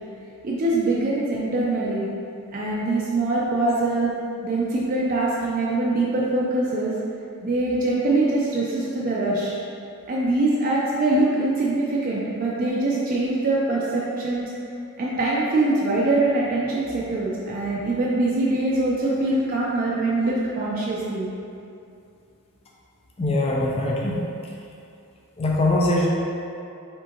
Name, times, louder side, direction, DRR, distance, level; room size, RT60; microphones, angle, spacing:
voice 1, 0.4-2.1 2.5-4.1 4.4-7.0 7.4-9.6 10.1-14.5 15.0-21.3, right 2 dB, 40° right, -5 dB, 0.5 m, -23 dB
voice 2, 23.2-24.2 25.4-26.1, left 1 dB, 25° left, -3 dB, 0.4 m, -22 dB
5.1 x 3.6 x 2.9 m, 2.6 s
head